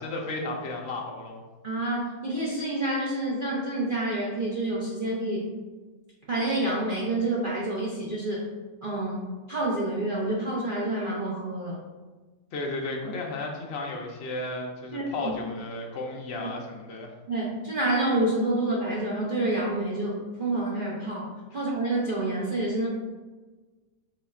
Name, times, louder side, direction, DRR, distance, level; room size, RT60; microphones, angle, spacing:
voice 1, 0.0-1.4 12.5-17.1, left 2 dB, 65° left, 0 dB, 0.6 m, -34 dB
voice 2, 1.6-5.5 6.3-8.5 8.8-11.8 14.9-15.3 16.4-16.5 17.3-22.9, right 2 dB, 65° right, -6 dB, 0.5 m, -28 dB
4.2 x 2.4 x 4.2 m, 1.3 s
omnidirectional pair, 1.8 m